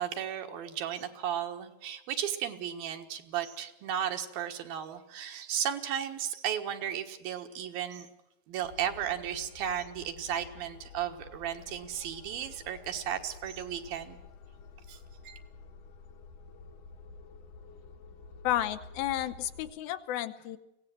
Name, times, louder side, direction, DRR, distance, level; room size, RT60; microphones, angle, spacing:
voice 1, 0.0-8.1 8.5-14.2 14.9-15.0 15.2-15.4, right 9 dB, 75° right, 5 dB, 3.2 m, -35 dB
sound 1, 8.6-19.7, left 5 dB, 65° left, 2.6 m, -51 dB
voice 2, 18.4-20.6, left 13 dB, 80° left, 10 dB, 2.7 m, -32 dB
24.0 x 17.0 x 7.7 m, 0.93 s
omnidirectional pair, 4.3 m